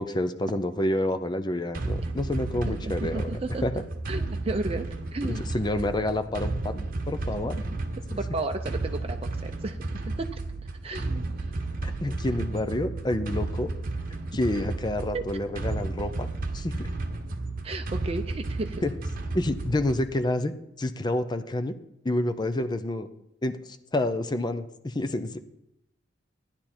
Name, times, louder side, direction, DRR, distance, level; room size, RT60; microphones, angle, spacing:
voice 1, 0.0-3.8 5.2-7.6 11.8-13.7 14.3-16.3 16.5-16.9 18.8-18.9 19.3-21.7 22.0-23.1 23.4-23.6 23.9-25.4, left 1 dB, 25° left, 9 dB, 0.6 m, -28 dB
sound 1, 1.7-20.2, right 2 dB, 50° right, 1.1 m, -33 dB
voice 2, 2.5-3.6 4.1-4.8 5.1-5.5 8.2-9.2 9.4-10.3 10.8-11.3 14.3-14.4 15.1-15.2 17.6-18.8, right 2 dB, 30° right, 4 dB, 0.6 m, -33 dB
15.0 x 10.5 x 4.4 m, 0.84 s
head